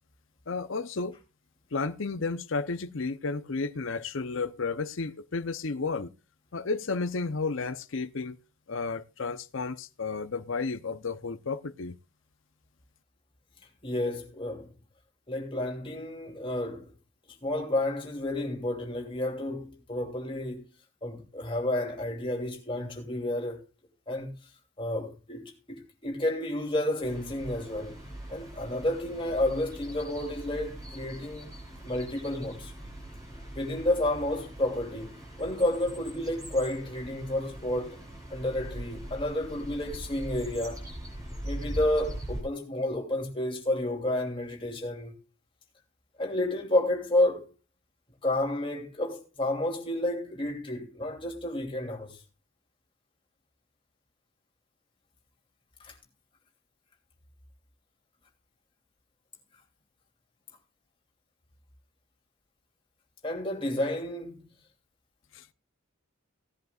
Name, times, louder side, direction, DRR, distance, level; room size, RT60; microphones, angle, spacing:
voice 1, 0.5-1.2 1.7-6.1 6.5-8.4 8.7-12.0 65.3-65.5, left 4 dB, 60° left, 0.7 m, -32 dB
voice 2, 13.8-14.7 15.3-16.9 17.4-20.6 21.0-23.6 24.1-24.3 24.8-28.0 28.3-31.5 31.8-32.7 33.5-38.0 38.3-40.8 41.4-45.2 46.2-47.5 48.2-52.2 55.8-55.9 63.2-64.4, left 1 dB, 25° left, 2.8 m, -30 dB
sound 1, 27.0-42.4, right 1 dB, 15° right, 6.9 m, -42 dB
17.5 x 11.0 x 2.4 m
head